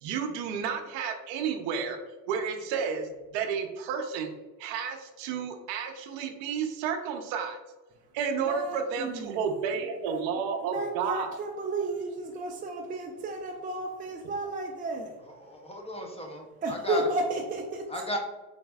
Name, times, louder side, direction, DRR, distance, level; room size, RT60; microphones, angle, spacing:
voice 1, 0.0-2.0 2.3-4.3 4.6-7.6 8.1-11.3, right 6 dB, 75° right, 5 dB, 0.7 m, -31 dB
voice 2, 8.3-9.4 10.6-15.2 16.6-17.9, right 2 dB, 20° right, 1 dB, 0.3 m, -33 dB
voice 3, 15.4-17.0 17.9-18.2, left 1 dB, 15° left, 1 dB, 0.7 m, -35 dB
4.0 x 2.5 x 2.3 m, 1.2 s
supercardioid pair, 75°, 46 cm